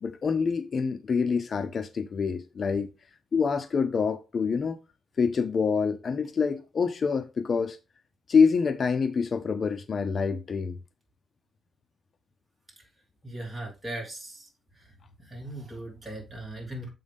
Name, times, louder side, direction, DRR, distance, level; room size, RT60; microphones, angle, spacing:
voice 1, 0.0-2.9 3.3-4.8 5.2-7.8 8.3-10.8, left 5 dB, 45° left, 0.5 m, -26 dB
voice 2, 13.2-14.5 14.8-14.9 15.2-16.9, right 1 dB, 15° right, 3.1 m, -38 dB
7.2 x 5.4 x 3.4 m
cardioid pair, 120°, 0 cm